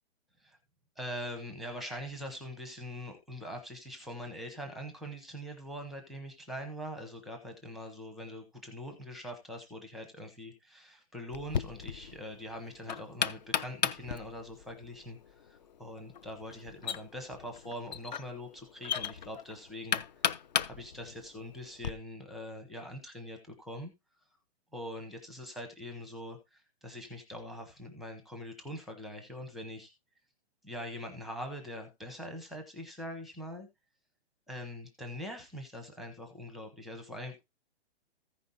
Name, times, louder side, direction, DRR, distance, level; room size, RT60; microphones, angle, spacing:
voice 1, 1.0-20.0 20.7-23.9 24.7-29.9 30.6-33.7 34.5-37.4, equal, ahead, 5 dB, 0.8 m, -43 dB
Knock, 11.3-21.9, left 8 dB, 40° left, 0.6 m, -36 dB
14.5 x 5.2 x 4.0 m, 0.22 s
hypercardioid pair, 175°, 34 cm